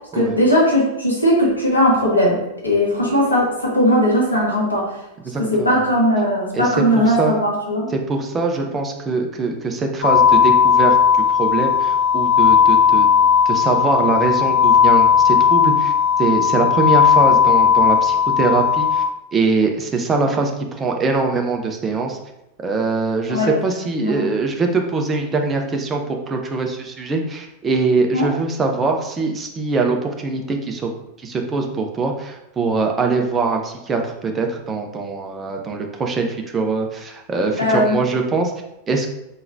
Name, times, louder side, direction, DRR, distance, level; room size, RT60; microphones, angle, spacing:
voice 1, 0.1-4.9 5.4-7.9 23.3-23.5 24.0-24.3 28.1-28.3 37.6-38.0, equal, 80° left, -4 dB, 1.5 m, -18 dB
voice 2, 5.2-5.7 6.5-7.3 7.9-11.0 11.3-13.1 13.5-15.9 16.2-19.0 19.3-22.2 22.6-30.9 31.2-38.5 38.9-39.1, right 3 dB, 20° right, 2 dB, 0.7 m, -22 dB
sound 1, 10.0-19.1, left 7 dB, 65° left, 0.5 m, -15 dB
4.4 x 3.9 x 2.6 m, 0.89 s
figure-of-eight pair, 90°, 0 cm